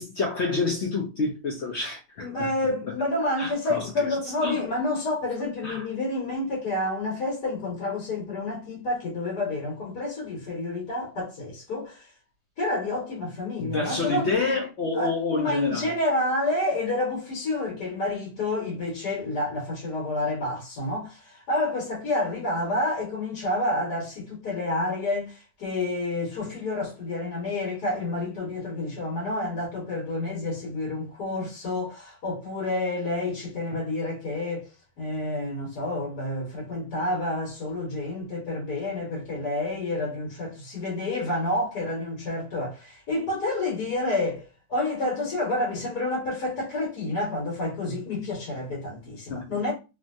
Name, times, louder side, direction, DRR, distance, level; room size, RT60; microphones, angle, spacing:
voice 1, 0.0-2.0 2.4-2.5 3.4-3.9 4.4-4.7 5.6-5.8 13.6-15.9 49.3-49.5, left 3 dB, 60° left, 0.8 m, -28 dB
voice 2, 2.2-12.1 12.6-14.4 14.9-49.7, left 2 dB, 75° left, 1.7 m, -29 dB
3.1 x 2.6 x 2.5 m
omnidirectional pair, 1.7 m